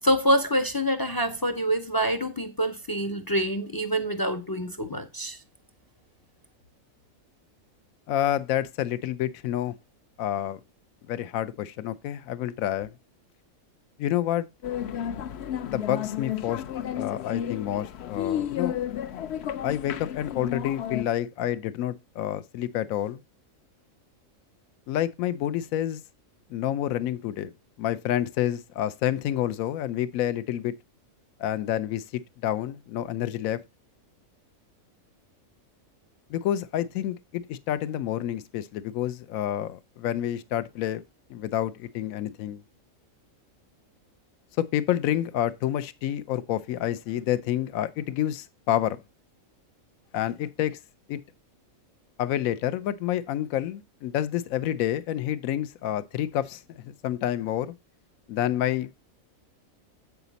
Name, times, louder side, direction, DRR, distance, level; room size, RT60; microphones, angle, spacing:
voice 1, 0.0-5.4, equal, 35° left, 0.3 m, -26 dB
voice 2, 8.1-9.7 10.2-10.6 11.1-12.9 14.0-14.5 15.7-16.6 16.9-18.7 19.6-23.2 24.9-26.0 26.5-27.5 27.8-30.7 31.4-33.6 36.3-41.0 41.3-42.6 44.6-49.0 50.1-50.8 51.1-51.2 52.2-57.7 58.3-58.9, left 12 dB, 80° left, 1.0 m, -28 dB
sound 1, 14.6-21.0, left 10 dB, 60° left, 0.8 m, -32 dB
8.1 x 5.9 x 3.9 m
omnidirectional pair, 1.4 m